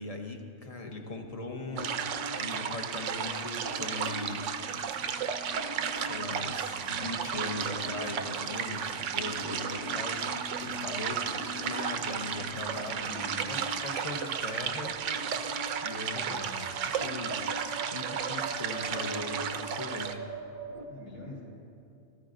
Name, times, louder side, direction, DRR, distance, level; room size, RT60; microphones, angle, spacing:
voice 1, 0.0-1.9 2.2-4.4 6.0-11.2 11.6-13.0 13.5-14.9 15.8-16.4 16.8-17.4 17.8-20.2, left 2 dB, 30° left, 3 dB, 0.8 m, -39 dB
sound 1, 1.2-20.9, right 1 dB, 85° right, 1.3 m, -44 dB
sound 2, 1.8-20.1, right 7 dB, 65° right, 0.9 m, -34 dB
voice 2, 11.0-11.5 12.8-13.6 16.2-16.7 20.9-21.4, left 1 dB, 75° left, -6 dB, 3.7 m, -45 dB
17.5 x 13.0 x 2.5 m, 2.6 s
omnidirectional pair, 1.5 m